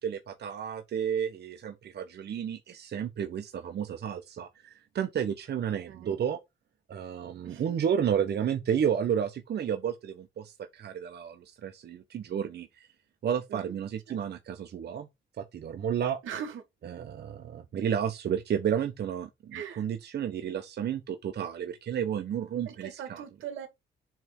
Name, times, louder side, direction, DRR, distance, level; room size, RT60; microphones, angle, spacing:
voice 1, 0.0-6.4 6.9-12.9 13.2-15.1 15.4-16.2 16.9-23.2, right 8 dB, 55° right, 1.1 m, -32 dB
voice 2, 5.9-6.2 7.4-7.8 13.5-13.8 14.1-14.2 16.2-16.6 19.5-19.9 22.7-23.7, right 8 dB, 85° right, 2.1 m, -40 dB
7.8 x 3.4 x 5.4 m
cardioid pair, 90°, 20 cm